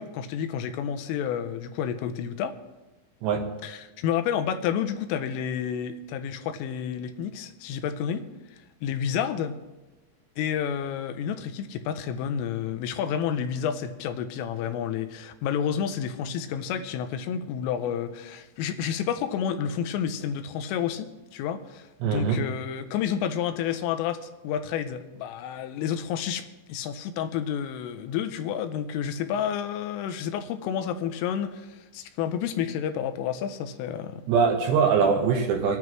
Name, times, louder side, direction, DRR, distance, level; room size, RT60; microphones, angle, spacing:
voice 1, 0.0-2.6 3.6-8.3 8.8-9.6 10.4-34.2, left 8 dB, 90° left, 8 dB, 3.3 m, -30 dB
voice 2, 22.0-22.4 34.3-35.8, right 6 dB, 70° right, 2 dB, 2.9 m, -22 dB
25.0 x 9.6 x 3.1 m, 1.1 s
omnidirectional pair, 5.7 m